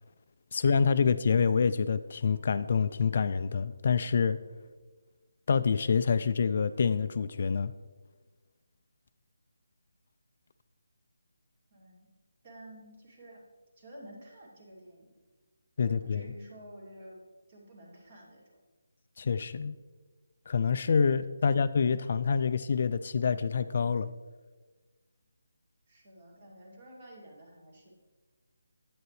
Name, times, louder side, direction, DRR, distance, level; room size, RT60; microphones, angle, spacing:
voice 1, 0.5-4.4 5.5-7.7 15.8-16.3 19.2-19.7 20.5-24.1, left 6 dB, 50° left, 12 dB, 0.3 m, -27 dB
voice 2, 11.7-12.1 12.4-13.4 13.8-15.1 15.8-17.2 17.5-18.6 21.4-21.6 25.9-27.9, right 1 dB, 40° right, -3 dB, 2.4 m, -51 dB
8.8 x 8.0 x 3.2 m, 1.3 s
figure-of-eight pair, 160°, 0 cm